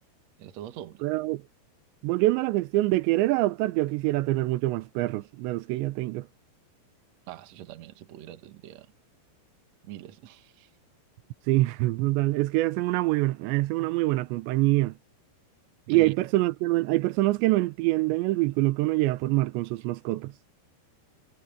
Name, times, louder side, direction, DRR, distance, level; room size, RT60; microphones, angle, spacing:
voice 1, 0.4-1.0 7.3-8.9 9.8-10.7 15.9-16.1, right 12 dB, 70° right, 1.7 m, -43 dB
voice 2, 1.0-1.4 2.0-6.3 11.5-15.0 15.9-20.3, right 19 dB, 90° right, 3.1 m, -25 dB
omnidirectional pair, 5.0 m